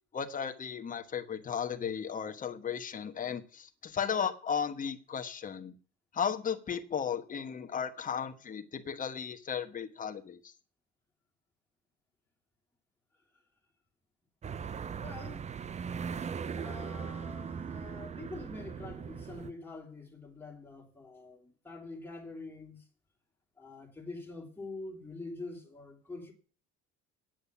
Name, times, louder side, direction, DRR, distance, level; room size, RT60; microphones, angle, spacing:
voice 1, 0.1-5.7 6.1-10.4, left 7 dB, 30° left, 1.2 m, -35 dB
sound 1, 14.4-19.5, right 6 dB, 25° right, 0.5 m, -39 dB
voice 2, 15.0-15.5 16.5-22.8 23.6-26.3, left 3 dB, 5° left, 3.4 m, -45 dB
9.0 x 8.0 x 7.0 m
cardioid pair, 115°, 29 cm